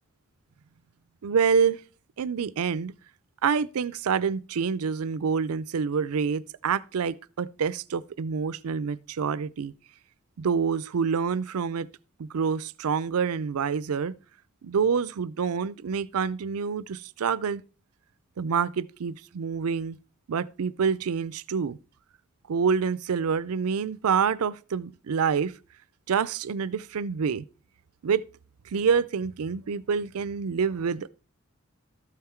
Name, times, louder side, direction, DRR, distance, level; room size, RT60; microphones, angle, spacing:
voice 1, 1.2-1.8 2.2-2.9 3.4-9.7 10.4-11.9 12.2-14.2 14.6-17.6 18.4-20.0 20.3-21.8 22.5-25.5 26.1-27.4 28.0-28.2 28.7-31.1, right 6 dB, 85° right, 0.4 m, -27 dB
13.0 x 5.7 x 4.4 m
head